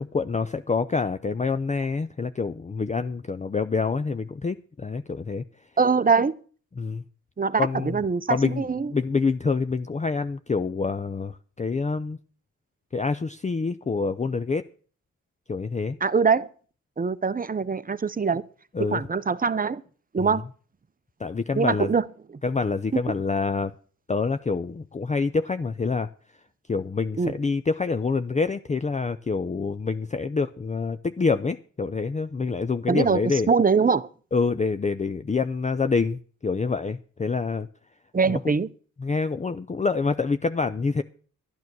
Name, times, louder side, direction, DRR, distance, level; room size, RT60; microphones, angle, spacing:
voice 1, 0.0-5.4 6.8-7.0 7.6-8.0 8.3-8.6 8.9-12.2 12.9-14.6 15.5-16.0 18.7-19.0 20.2-20.4 21.2-22.0 22.4-23.7 24.1-26.1 26.7-33.5 34.3-37.7 38.3-38.4 39.0-41.0, left 4 dB, 20° left, 11 dB, 0.5 m, -26 dB
voice 2, 5.8-6.3 7.4-8.9 16.0-16.5 17.0-18.4 18.8-19.8 20.1-20.4 21.5-22.0 22.9-23.0 27.2-27.3 32.9-33.2 33.5-34.1 38.1-38.7, right 5 dB, 25° right, 16 dB, 0.7 m, -23 dB
12.0 x 9.4 x 6.1 m, 0.43 s
cardioid pair, 80°, 32 cm